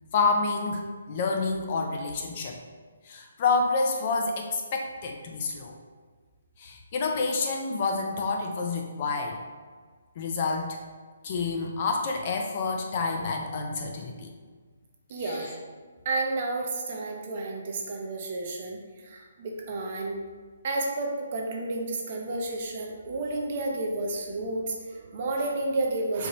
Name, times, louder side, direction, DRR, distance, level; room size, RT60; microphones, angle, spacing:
voice 1, 0.1-2.6 3.0-5.8 6.6-9.4 10.2-10.8 11.2-14.3 15.2-15.4, left 4 dB, 25° left, 2 dB, 0.3 m, -28 dB
voice 2, 15.1-15.5 16.0-20.2 20.6-26.3, right 2 dB, 30° right, 1 dB, 0.5 m, -31 dB
4.6 x 2.6 x 4.0 m, 1.5 s
hypercardioid pair, 180°, 0 cm